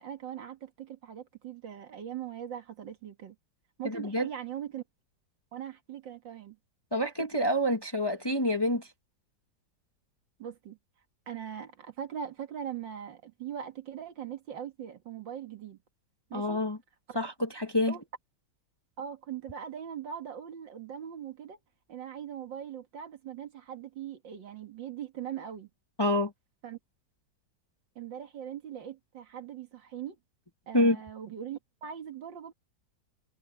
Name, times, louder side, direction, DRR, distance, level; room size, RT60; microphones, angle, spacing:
voice 1, 0.0-3.4 3.8-4.8 5.5-6.6 10.4-10.8 11.3-15.8 16.3-16.6 17.9-18.0 19.0-21.6 21.9-25.7 26.6-26.8 28.0-30.2 30.7-32.5, right 9 dB, 85° right, 2.5 m, -40 dB
voice 2, 3.8-4.3 6.9-8.9 16.3-16.8 17.1-17.9 26.0-26.3 30.7-31.0, left 1 dB, 15° left, 1.0 m, -27 dB
omnidirectional pair, 2.0 m